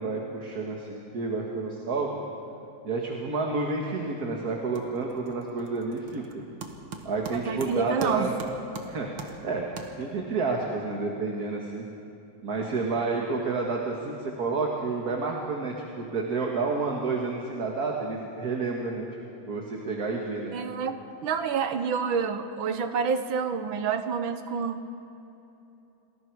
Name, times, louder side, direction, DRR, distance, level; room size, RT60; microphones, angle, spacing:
voice 1, 0.0-2.2 2.8-6.4 7.1-8.3 8.9-9.1 9.4-9.7 10.0-11.9 12.4-19.1 19.5-20.9, right 3 dB, 50° right, 0 dB, 2.1 m, -30 dB
sound 1, 3.9-4.3 4.5-10.4, right 4 dB, 70° right, 2.2 m, -42 dB
voice 2, 7.3-8.3 20.5-24.8, right 6 dB, 85° right, 8 dB, 1.9 m, -28 dB
28.5 x 20.5 x 4.7 m, 2.9 s
omnidirectional pair, 2.1 m